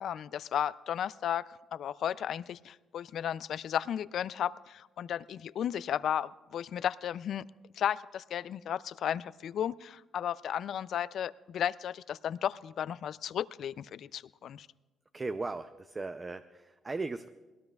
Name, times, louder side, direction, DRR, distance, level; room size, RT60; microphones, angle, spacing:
voice 1, 0.0-7.4 7.8-14.7, left 9 dB, 70° left, 18 dB, 0.3 m, -34 dB
voice 2, 15.1-17.3, right 3 dB, 25° right, 10 dB, 0.5 m, -37 dB
20.5 x 18.0 x 2.3 m, 1.3 s
cardioid pair, 90°, 0 cm